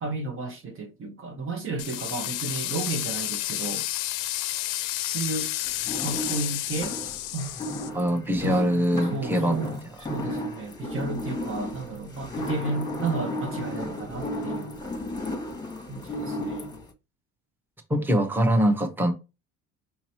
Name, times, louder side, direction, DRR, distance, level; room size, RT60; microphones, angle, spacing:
voice 1, 0.0-3.8 5.1-5.5 6.0-7.0 7.3-7.5 8.4-8.8 9.1-9.7 10.0-14.8 15.9-16.7, right 3 dB, 40° right, 1.1 m, -33 dB
sound 1, 1.8-7.9, left 15 dB, 80° left, 0.6 m, -31 dB
sound 2, 5.7-16.9, left 1 dB, 15° left, 1.2 m, -34 dB
voice 2, 7.9-9.8 17.9-19.1, equal, 5° right, 1.0 m, -23 dB
5.4 x 2.8 x 2.9 m
supercardioid pair, 85°, 32 cm